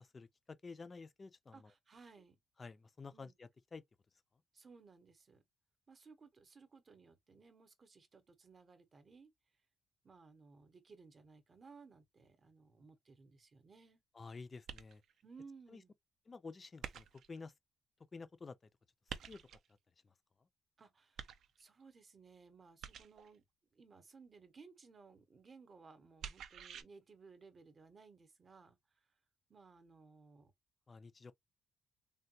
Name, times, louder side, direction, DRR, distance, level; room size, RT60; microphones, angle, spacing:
voice 1, 0.0-1.7 2.6-3.8 14.2-15.0 15.7-15.8 16.3-17.5 18.1-18.5 19.3-19.4 30.9-31.3, left 4 dB, 30° left, 0.4 m, -51 dB
voice 2, 1.5-2.4 3.1-3.3 4.5-5.4 5.9-9.3 10.0-14.0 15.2-15.9 20.8-23.4 23.7-29.1 29.5-30.5, right 4 dB, 35° right, 0.8 m, -60 dB
sound 1, 14.7-15.2 16.8-17.4 19.1-19.7 21.2-21.8 22.8-23.4 26.2-26.8, right 8 dB, 70° right, 0.4 m, -48 dB
3.3 x 2.2 x 2.7 m
cardioid pair, 115°, 0 cm